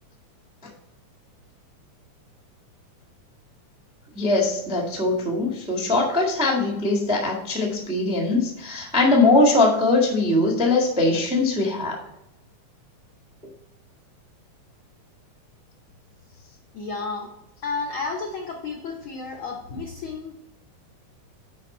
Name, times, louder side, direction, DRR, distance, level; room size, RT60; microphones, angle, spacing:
voice 1, 4.1-12.0, left 2 dB, 10° right, -1 dB, 0.4 m, -21 dB
voice 2, 16.7-17.3 17.6-20.4, left 4 dB, 75° left, 0 dB, 1.2 m, -32 dB
9.6 x 4.8 x 4.3 m, 0.89 s
omnidirectional pair, 3.6 m